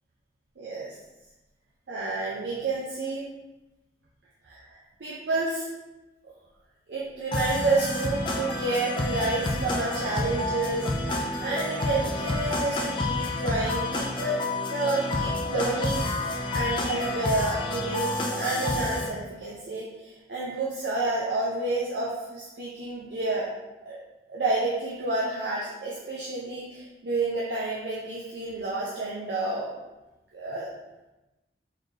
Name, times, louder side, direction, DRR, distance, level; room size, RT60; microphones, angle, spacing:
voice 1, 0.6-1.0 1.9-3.2 4.4-4.7 5.0-5.7 6.9-16.1 16.5-23.5 23.9-24.0 24.3-29.7 30.3-30.7, right 2 dB, 75° right, -6 dB, 0.6 m, -30 dB
sound 1, 7.3-19.1, left 2 dB, 25° left, 0.3 m, -29 dB
4.0 x 3.2 x 2.7 m, 1.0 s
head